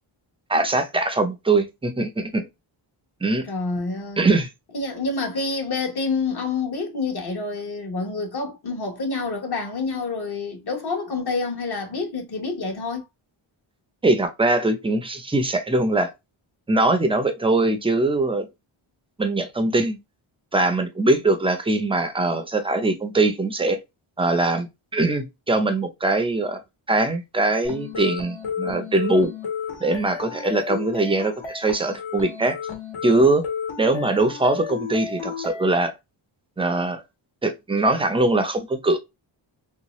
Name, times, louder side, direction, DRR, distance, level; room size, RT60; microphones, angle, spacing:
voice 1, 0.5-2.4 3.2-3.4 4.2-4.5 14.0-16.1 16.7-18.5 19.2-20.0 20.5-23.8 24.2-26.6 26.9-29.3 29.8-32.6 33.0-33.4 33.8-35.9 36.6-37.0 37.4-39.0, right 2 dB, 10° right, 0.4 m, -22 dB
voice 2, 3.4-4.3 4.7-13.0, left 3 dB, 50° left, 1.0 m, -28 dB
sound 1, 27.6-35.7, left 6 dB, 75° left, 1.4 m, -32 dB
3.1 x 2.7 x 3.0 m
wide cardioid pair, 170°, 49 cm